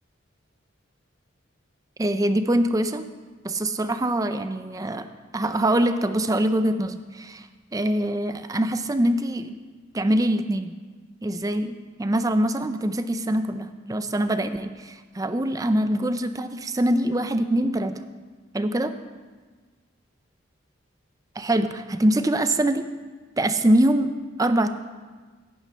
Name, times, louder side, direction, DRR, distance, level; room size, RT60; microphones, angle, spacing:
voice 1, 2.0-3.0 3.4-5.1 5.3-7.5 7.7-9.6 9.9-10.7 11.2-18.0 18.5-18.9 21.4-22.9 23.4-24.1 24.4-24.7, right 1 dB, 15° right, 10 dB, 0.5 m, -24 dB
10.0 x 8.9 x 5.7 m, 1.4 s
head